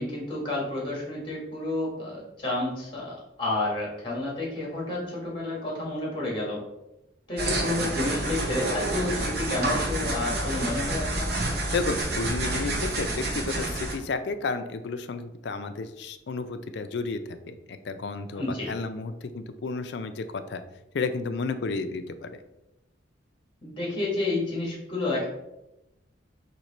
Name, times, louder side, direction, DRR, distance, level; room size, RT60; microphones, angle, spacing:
voice 1, 0.0-6.6 7.3-11.3 18.3-18.7 23.6-25.2, left 2 dB, 25° left, -4 dB, 1.7 m, -30 dB
sound 1, 7.4-14.0, right 2 dB, 55° right, 0.9 m, -29 dB
voice 2, 11.7-20.6 20.9-22.4, left 4 dB, 65° left, 10 dB, 0.4 m, -32 dB
4.6 x 2.8 x 4.1 m, 0.93 s
head